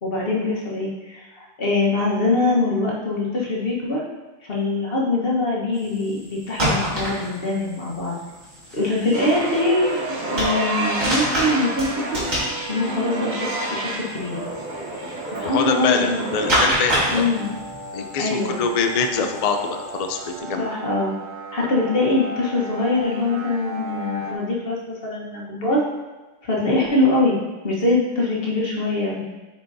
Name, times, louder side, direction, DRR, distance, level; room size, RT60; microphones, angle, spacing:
voice 1, 0.0-4.0 4.4-8.2 8.7-10.0 10.3-12.2 12.7-14.4 15.4-16.3 17.1-17.5 18.2-18.6 20.6-21.1 21.5-25.8 26.4-27.4 27.6-29.2, left 2 dB, 50° left, -4 dB, 1.4 m, -23 dB
sound 1, 5.7-20.4, equal, 75° right, 2.6 m, -29 dB
sound 2, 9.1-24.3, right 1 dB, 40° right, 0.9 m, -31 dB
voice 2, 15.4-17.2 17.9-20.7, left 4 dB, 85° left, 5 dB, 0.3 m, -24 dB
8.6 x 4.5 x 2.7 m, 1.2 s
omnidirectional pair, 1.4 m